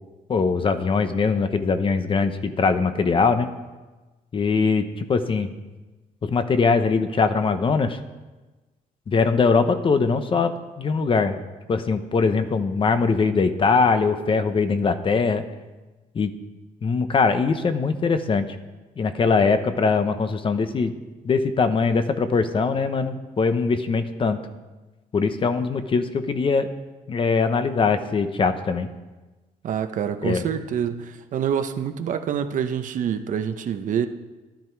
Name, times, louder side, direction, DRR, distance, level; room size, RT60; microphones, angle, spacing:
voice 1, 0.3-3.5 4.3-5.5 6.2-8.0 9.1-11.4 11.7-15.4 16.1-16.3 16.8-18.5 19.0-20.9 21.2-24.4 25.1-26.7 27.1-28.9 30.2-30.4, left 4 dB, 35° left, 9 dB, 0.9 m, -21 dB
voice 2, 29.6-34.1, right 8 dB, 60° right, 8 dB, 1.0 m, -26 dB
13.0 x 12.0 x 4.6 m, 1.2 s
cardioid pair, 120°, 15 cm